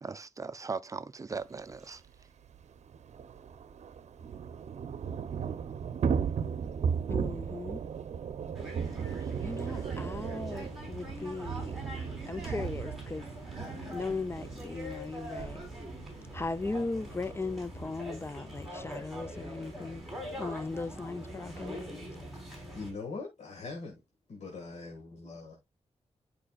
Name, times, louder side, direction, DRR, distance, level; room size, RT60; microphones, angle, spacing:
voice 1, 0.0-2.0 9.0-9.4, right 4 dB, 30° right, 0.5 m, -39 dB
Thunder / Rain, 1.7-1.8 2.1-2.2 2.5-18.3, right 7 dB, 80° right, 0.6 m, -36 dB
voice 2, 7.1-7.8 9.4-11.8 12.3-13.3 13.9-15.6 16.3-20.0 20.4-21.8, left 3 dB, 20° left, 0.4 m, -37 dB
sound 1, 8.5-22.9, equal, ahead, 3.7 m, -43 dB
voice 3, 22.4-24.0 24.3-25.6, left 3 dB, 75° left, 1.7 m, -42 dB
11.0 x 5.1 x 2.3 m
wide cardioid pair, 120°, 12 cm